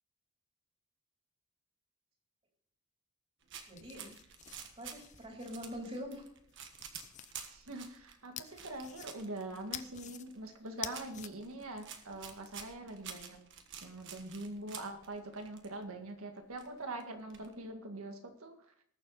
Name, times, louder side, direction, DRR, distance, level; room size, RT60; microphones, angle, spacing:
sound 1, 3.4-15.8 16.1-16.2 16.4-17.7, right 7 dB, 55° right, 1.5 m, -50 dB
sound 2, 3.6-6.0 6.5-7.3 8.4-9.4 9.7-10.2 10.7-11.3, left 10 dB, 30° left, 0.5 m, -47 dB
voice 1, 3.7-4.1 4.8-6.2 8.4-8.6, equal, 25° right, 0 dB, 3.5 m, -44 dB
voice 2, 7.5-13.4 13.8-18.5, right 2 dB, 75° right, 5 dB, 2.0 m, -43 dB
20.0 x 7.1 x 4.1 m, 0.65 s
head